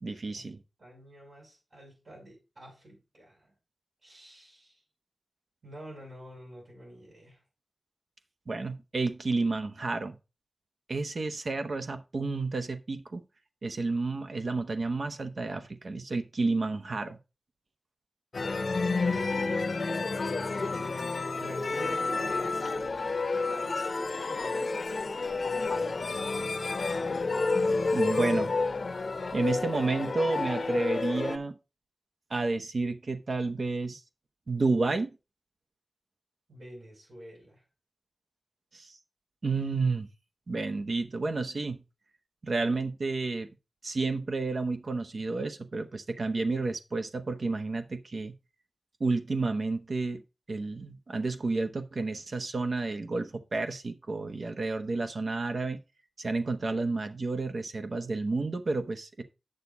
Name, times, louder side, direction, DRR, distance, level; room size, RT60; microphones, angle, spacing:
voice 1, 0.0-0.6 8.5-10.2 10.9-13.2 13.6-17.2 27.9-28.5 29.3-31.6 32.3-34.0 34.5-35.2 38.7-39.0 39.4-40.1 40.5-41.8 42.4-43.5 43.8-48.3 49.0-50.2 50.5-55.8 56.2-59.2, right 3 dB, 65° right, 1.0 m, -31 dB
voice 2, 0.8-3.5 4.0-4.8 5.6-7.4 18.6-20.5 21.4-22.7 23.3-26.2 36.5-37.6, equal, 85° right, 5.6 m, -48 dB
sound 1, 18.3-31.4, left 3 dB, 70° left, 0.8 m, -30 dB
8.4 x 6.7 x 3.9 m
wide cardioid pair, 95°, 0 cm